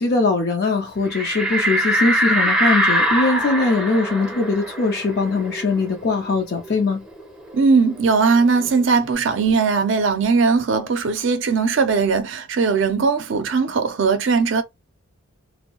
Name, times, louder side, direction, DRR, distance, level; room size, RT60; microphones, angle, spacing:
voice 1, 0.0-7.0, left 3 dB, 50° left, 0.4 m, -21 dB
sound 1, 1.1-6.3 6.6-6.7 7.1-8.7, right 1 dB, 5° right, 0.5 m, -23 dB
voice 2, 7.5-14.6, right 4 dB, 60° right, 0.5 m, -19 dB
2.6 x 2.0 x 2.8 m
head